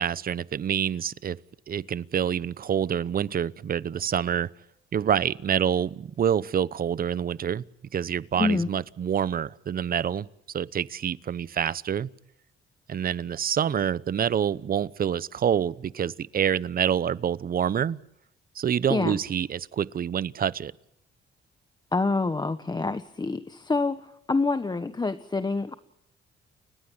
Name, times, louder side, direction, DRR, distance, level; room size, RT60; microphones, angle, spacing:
voice 1, 0.0-1.4 1.7-4.5 4.9-7.6 7.9-10.3 10.5-12.1 12.9-18.0 18.6-20.7, right 8 dB, 45° right, 0.9 m, -27 dB
voice 2, 8.3-8.7 18.9-19.2 21.9-25.8, left 3 dB, 20° left, 1.2 m, -27 dB
30.0 x 15.5 x 8.7 m
cardioid pair, 90°, 20 cm